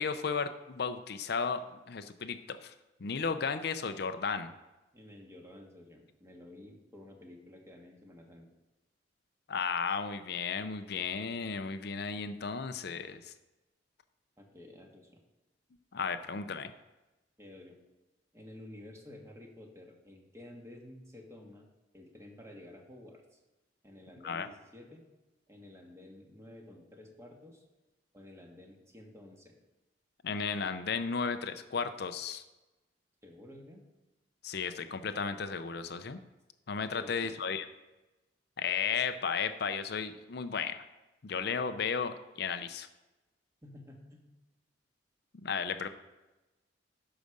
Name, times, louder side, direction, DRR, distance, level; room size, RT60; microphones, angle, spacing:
voice 1, 0.0-2.7 3.0-4.5 9.5-13.3 15.9-16.7 24.2-24.5 30.2-32.4 34.4-36.2 36.7-37.6 38.6-40.8 41.2-42.9 45.4-45.9, left 5 dB, 60° left, 10 dB, 0.5 m, -34 dB
voice 2, 4.9-8.5 14.4-15.2 17.4-17.7 18.3-21.6 21.9-23.4 23.8-25.0 25.5-27.6 28.1-29.5 33.2-33.8 36.9-37.3 43.6-44.3 45.6-45.9, left 1 dB, 15° right, 1 dB, 1.5 m, -52 dB
10.5 x 4.9 x 6.5 m, 1.0 s
head